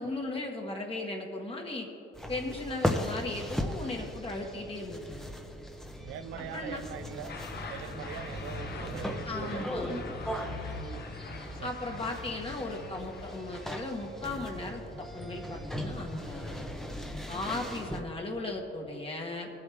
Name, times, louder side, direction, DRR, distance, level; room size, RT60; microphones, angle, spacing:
voice 1, 0.0-1.9 2.3-5.3 6.4-6.8 9.2-10.0 10.7-11.0 11.6-16.7 17.3-19.5, left 2 dB, 30° left, 0 dB, 1.6 m, -37 dB
sound 1, 2.1-18.0, left 1 dB, ahead, 1.0 m, -38 dB
voice 2, 6.0-7.3 7.7-10.0 10.4-10.8 11.5-11.7 16.5-16.8, right 10 dB, 85° right, 12 dB, 0.6 m, -43 dB
sound 2, 7.3-14.4, left 5 dB, 55° left, 1.2 m, -46 dB
19.0 x 8.0 x 3.6 m, 2.8 s
cardioid pair, 90°, 20 cm